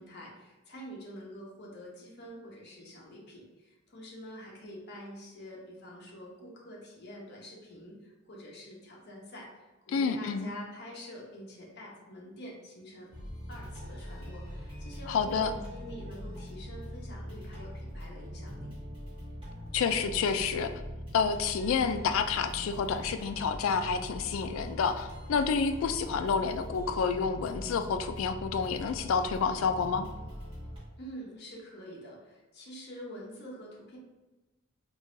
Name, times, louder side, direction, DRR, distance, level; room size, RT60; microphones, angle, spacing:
voice 1, 0.0-13.1 13.5-18.7 31.0-34.0, equal, 55° left, -2 dB, 0.9 m, -46 dB
voice 2, 9.9-10.5 15.1-15.5 19.7-20.7 21.1-30.1, left 5 dB, 70° left, 8 dB, 0.3 m, -29 dB
sound 1, 13.1-30.8, equal, 25° right, 1.5 m, -42 dB
3.8 x 2.9 x 2.6 m, 1.1 s
head